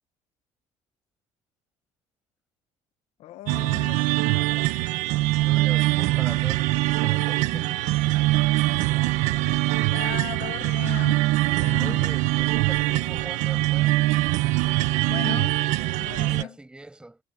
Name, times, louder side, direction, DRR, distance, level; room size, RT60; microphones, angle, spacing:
voice 1, 3.2-4.0 9.9-11.2 11.6-12.0 15.1-15.6 15.9-16.6, left 14 dB, 65° left, 1.4 m, -36 dB
sound 1, 3.5-16.4, right 18 dB, 85° right, 1.3 m, -23 dB
voice 2, 5.4-8.0 11.8-14.0 15.7-17.2, right 2 dB, 5° right, 7.6 m, -42 dB
cardioid pair, 145°, 12 cm